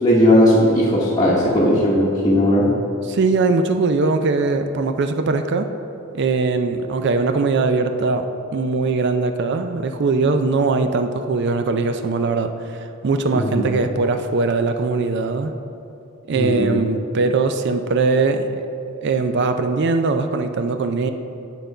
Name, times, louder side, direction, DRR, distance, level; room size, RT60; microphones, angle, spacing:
voice 1, 0.0-2.7 13.3-13.7 16.3-16.7, left 1 dB, 20° left, -7 dB, 0.9 m, -17 dB
voice 2, 3.1-5.7 6.1-12.5 13.0-15.5 16.3-18.5 19.0-21.1, right 3 dB, 55° right, 7 dB, 0.4 m, -20 dB
9.2 x 3.8 x 5.5 m, 2.7 s
head